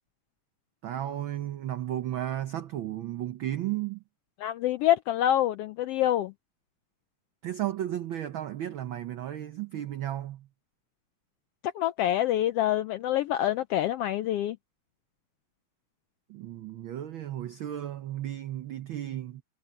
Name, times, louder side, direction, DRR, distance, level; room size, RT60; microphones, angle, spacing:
voice 1, 0.8-4.0 7.4-10.5 16.3-19.4, right 12 dB, 85° right, 1.1 m, -34 dB
voice 2, 4.4-6.3 11.6-14.6, left 12 dB, 80° left, 1.3 m, -26 dB
omnidirectional pair, 3.3 m